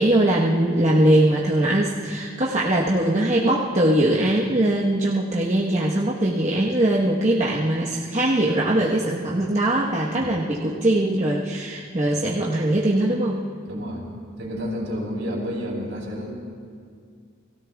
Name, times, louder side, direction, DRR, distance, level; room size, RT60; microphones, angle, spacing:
voice 1, 0.0-13.4, right 1 dB, 35° right, -5 dB, 1.2 m, -21 dB
voice 2, 13.7-14.1 14.4-16.3, equal, 65° right, -2 dB, 4.2 m, -30 dB
30.0 x 19.5 x 2.4 m, 2.1 s
head